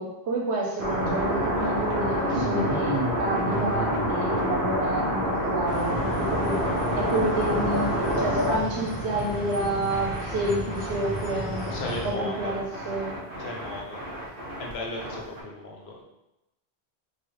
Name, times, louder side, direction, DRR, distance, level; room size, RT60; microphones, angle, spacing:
voice 1, 0.0-6.7 7.0-11.7 12.0-13.2, right 2 dB, 85° right, -1 dB, 1.0 m, -29 dB
sound 1, 0.8-15.4, equal, 60° right, 0.9 m, -28 dB
sound 2, 5.7-12.1, equal, 50° left, 0.6 m, -35 dB
voice 2, 11.7-12.6 13.4-14.0 14.6-16.0, left 2 dB, 75° left, 0 dB, 0.9 m, -36 dB
3.1 x 2.1 x 3.0 m, 0.93 s
omnidirectional pair, 1.1 m